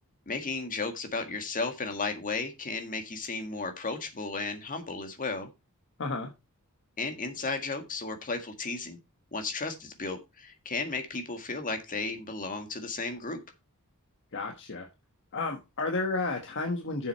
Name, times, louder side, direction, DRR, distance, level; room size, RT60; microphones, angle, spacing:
voice 1, 0.3-5.5 7.0-9.0 9.3-13.4, left 3 dB, 40° left, 6 dB, 1.8 m, -34 dB
voice 2, 6.0-6.3 14.3-14.9 15.3-17.1, left 3 dB, 55° left, 4 dB, 1.2 m, -32 dB
8.2 x 7.3 x 4.4 m, 0.25 s
head